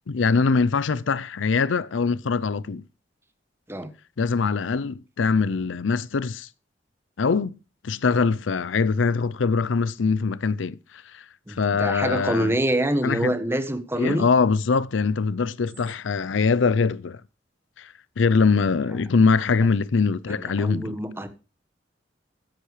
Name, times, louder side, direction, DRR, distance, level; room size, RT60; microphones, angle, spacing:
voice 1, 0.1-2.8 4.2-6.5 7.2-7.6 7.8-10.8 11.1-11.2 11.6-12.6 13.0-13.3 14.0-17.2 17.8-17.9 18.2-21.0, left 4 dB, 85° left, 0.5 m, -22 dB
voice 2, 11.5-14.3 20.3-21.3, right 1 dB, 15° right, 1.3 m, -26 dB
13.0 x 10.0 x 3.2 m
head